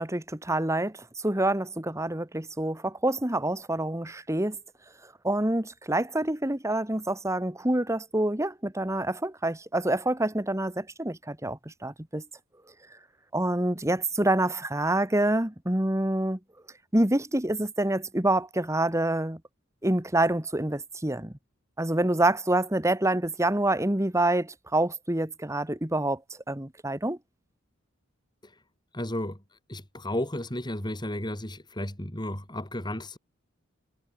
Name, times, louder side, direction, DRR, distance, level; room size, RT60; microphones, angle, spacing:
voice 1, 0.0-4.6 5.2-12.2 13.3-16.4 16.9-19.4 19.8-21.3 21.8-26.2 26.5-27.2, right 1 dB, 15° right, 1.6 m, -27 dB
voice 2, 28.9-33.2, left 1 dB, 20° left, 4.8 m, -33 dB
head